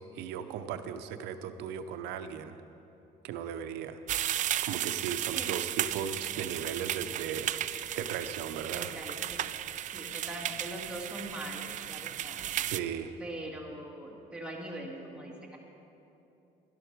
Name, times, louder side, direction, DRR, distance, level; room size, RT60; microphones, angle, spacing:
voice 1, 0.0-2.6 3.2-4.0 4.3-7.6 8.0-8.9 9.9-10.1 12.7-13.1, right 8 dB, 90° right, 9 dB, 0.7 m, -37 dB
sound 1, 4.1-12.8, right 11 dB, 50° right, 0.4 m, -34 dB
voice 2, 8.7-9.5 9.9-12.4 13.2-15.6, right 1 dB, 5° right, -2 dB, 2.0 m, -42 dB
12.0 x 12.0 x 4.6 m, 2.9 s
cardioid pair, 110°, 17 cm